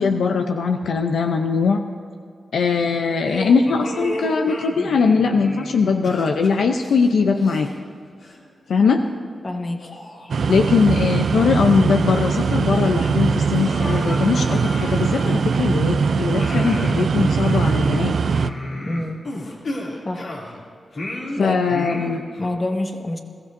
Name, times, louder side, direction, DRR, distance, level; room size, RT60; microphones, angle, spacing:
voice 1, 0.0-1.8 2.5-7.7 8.7-9.0 10.5-18.1 21.4-22.2, left 5 dB, 85° left, 4 dB, 0.7 m, -20 dB
sound 1, 3.2-7.9 8.2-8.4 9.1-9.2 9.8-11.1 11.5-11.6 12.0-12.6 12.8-12.9 13.4-15.9 16.4-20.6 20.9-22.5, left 1 dB, 70° left, 2.9 m, -33 dB
voice 2, 9.4-9.8 18.8-19.2 20.0-20.3 21.4-21.6 22.4-23.2, left 1 dB, 40° left, 4 dB, 1.5 m, -26 dB
sound 2, 10.3-18.5, right 5 dB, 75° right, 0.4 m, -21 dB
21.0 x 14.5 x 2.7 m, 2.3 s
cardioid pair, 50°, 0 cm